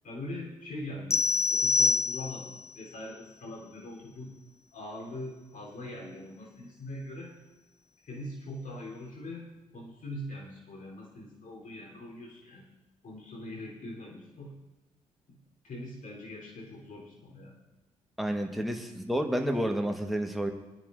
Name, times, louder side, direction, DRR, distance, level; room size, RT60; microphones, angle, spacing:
voice 1, 0.0-4.3 4.7-7.3 8.0-12.7 13.0-14.5 15.3-15.4 15.6-17.6, left 1 dB, 50° left, -2 dB, 4.1 m, -42 dB
sound 1, 1.1-2.7, left 4 dB, 15° left, 0.4 m, -26 dB
voice 2, 18.2-20.5, equal, ahead, 3 dB, 1.6 m, -30 dB
23.5 x 10.0 x 2.7 m, 1.1 s
hypercardioid pair, 40°, 17 cm